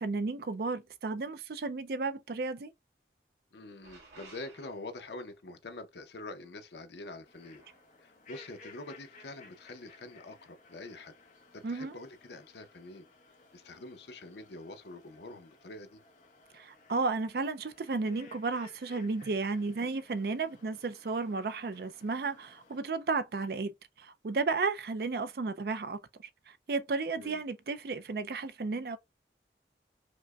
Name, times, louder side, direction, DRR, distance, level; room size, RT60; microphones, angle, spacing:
voice 1, 0.0-2.7 11.6-11.9 16.5-23.7 24.0-26.0 26.5-29.0, right 4 dB, 60° right, 0.4 m, -33 dB
voice 2, 3.5-7.6 8.0-11.1 11.5-13.1 13.5-16.0 27.1-27.4, left 2 dB, 75° left, 0.7 m, -45 dB
sound 1, 3.8-5.2 7.6-7.9, right 3 dB, 80° right, 2.1 m, -55 dB
sound 2, 7.2-22.8, left 3 dB, 45° left, 0.8 m, -58 dB
5.1 x 2.1 x 2.3 m
head